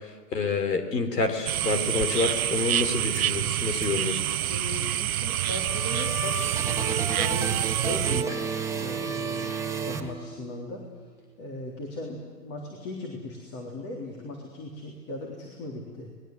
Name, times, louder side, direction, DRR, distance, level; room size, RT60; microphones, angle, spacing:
voice 1, 0.3-4.2, left 4 dB, 75° left, 7 dB, 3.9 m, -28 dB
sound 1, 1.5-8.2, right 12 dB, 60° right, 0.9 m, -27 dB
voice 2, 4.5-10.8 11.4-16.1, left 2 dB, 30° left, 0 dB, 3.6 m, -38 dB
sound 2, 5.3-10.7, right 5 dB, 5° right, 1.7 m, -33 dB
28.0 x 21.0 x 8.0 m, 1.5 s
hypercardioid pair, 125°, 49 cm